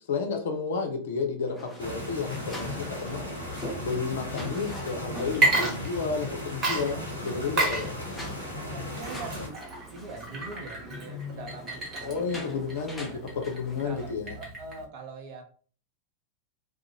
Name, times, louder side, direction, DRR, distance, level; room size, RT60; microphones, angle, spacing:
voice 1, 0.1-3.3 3.8-7.9 12.0-14.4, left 5 dB, 60° left, 4 dB, 0.5 m, -31 dB
sound 1, 1.5-14.1, left 1 dB, 5° left, 0.6 m, -43 dB
sound 2, 1.8-9.5, left 1 dB, 90° right, 0.8 m, -37 dB
Water / Liquid, 5.3-6.3 6.6-14.9, right 2 dB, 25° right, 0.9 m, -31 dB
voice 2, 8.6-9.5 9.9-12.7 13.1-13.2 13.8-14.1 14.4-15.4, right 3 dB, 45° right, 3 dB, 0.6 m, -43 dB
2.4 x 2.1 x 2.8 m, 0.42 s
figure-of-eight pair, 90°, 0 cm